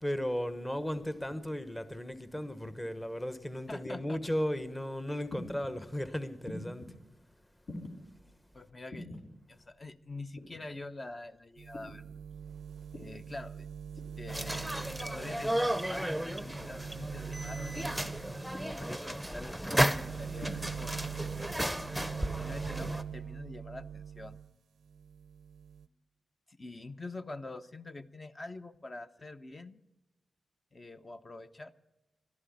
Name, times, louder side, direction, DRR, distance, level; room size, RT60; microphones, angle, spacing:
voice 1, 0.0-7.0, equal, 15° left, 1.2 m, -35 dB
sound 1, 1.0-1.4 2.4-2.8 3.8-4.3 5.3-5.7 6.5-6.9 7.6-8.0 8.9-9.2 10.4-10.7 11.7-12.0 12.9-13.2 14.0-14.3 15.3-15.6 16.5-16.8 17.7-18.0 18.5-18.8 19.7-20.0 20.4-20.5, left 1 dB, 75° left, 3.8 m, -46 dB
voice 2, 3.7-4.2 8.5-12.0 12.9-13.7 14.2-17.8 18.6-21.8 22.4-24.4 26.5-29.8 30.7-31.7, left 2 dB, 35° left, 0.8 m, -45 dB
sound 2, 11.6-24.5 24.9-25.9, right 7 dB, 85° right, 0.4 m, -43 dB
sound 3, 14.3-23.0, right 1 dB, ahead, 0.8 m, -34 dB
13.0 x 11.0 x 9.5 m
cardioid pair, 55°, 0 cm